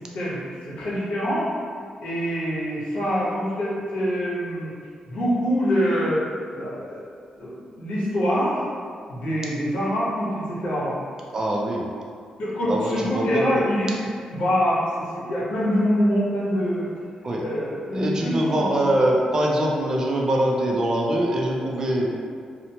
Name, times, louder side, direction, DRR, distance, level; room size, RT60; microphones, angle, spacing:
voice 1, 0.1-1.5 2.0-4.7 5.1-6.2 6.5-7.0 7.4-8.7 9.1-11.0 12.4-13.9 14.3-14.8 15.1-16.9 17.4-18.6 22.0-22.1, equal, 75° left, -8 dB, 0.9 m, -25 dB
voice 2, 11.3-11.9 12.7-13.6 17.2-17.4 17.9-22.1, right 1 dB, 30° right, -1 dB, 0.3 m, -23 dB
2.9 x 2.0 x 2.7 m, 2.1 s
wide cardioid pair, 175°, 2 cm